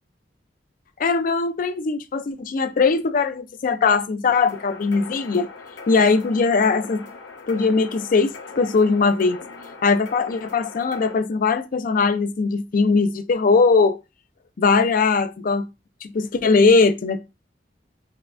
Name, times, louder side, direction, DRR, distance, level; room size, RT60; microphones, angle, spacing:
voice 1, 1.0-5.5 5.9-7.0 7.5-9.4 9.8-14.0 14.6-15.7 16.0-17.2, left 4 dB, 50° left, 0.4 m, -20 dB
sound 1, 4.3-11.1, left 4 dB, 85° left, 0.8 m, -40 dB
5.5 x 2.3 x 2.4 m
head